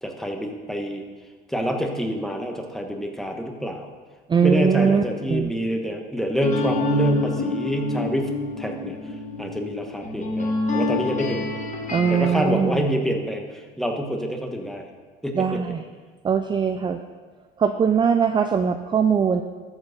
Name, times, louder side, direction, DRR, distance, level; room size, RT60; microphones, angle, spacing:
voice 1, 0.0-1.0 1.5-3.9 4.4-9.0 9.4-11.5 12.1-14.8 15.2-15.6, equal, ahead, 3 dB, 1.2 m, -27 dB
voice 2, 4.3-5.0 5.3-5.5 11.9-12.9 15.4-15.8 16.2-17.0 17.6-19.4, right 6 dB, 25° right, 7 dB, 0.4 m, -21 dB
sound 1, 6.4-12.4, left 3 dB, 40° left, 1.5 m, -27 dB
13.5 x 4.8 x 5.2 m, 1.5 s
cardioid pair, 100°, 20 cm